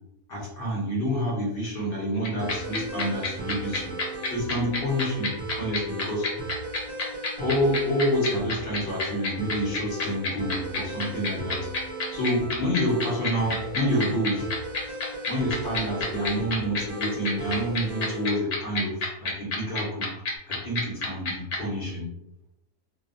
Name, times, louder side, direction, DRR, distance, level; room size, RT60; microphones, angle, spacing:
voice 1, 0.3-4.0 4.3-6.3 7.4-11.7 12.1-14.5 14.9-15.0 15.3-20.1 20.5-22.1, equal, 55° left, -4 dB, 0.6 m, -28 dB
sound 1, 2.2-21.6, left 3 dB, 70° left, 1.2 m, -28 dB
sound 2, 2.4-18.4, right 1 dB, 50° right, 1.2 m, -37 dB
2.8 x 2.0 x 2.5 m, 0.88 s
omnidirectional pair, 1.7 m